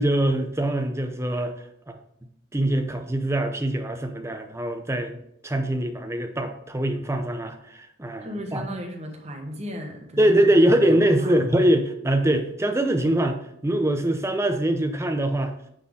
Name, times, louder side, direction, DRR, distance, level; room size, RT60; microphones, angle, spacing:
voice 1, 0.0-1.5 1.9-2.0 2.5-5.2 5.4-8.7 10.2-13.4 13.6-15.5, right 1 dB, 15° right, 6 dB, 0.5 m, -23 dB
voice 2, 8.2-11.4, equal, 30° right, 1 dB, 1.2 m, -36 dB
9.4 x 4.2 x 3.6 m, 0.75 s
head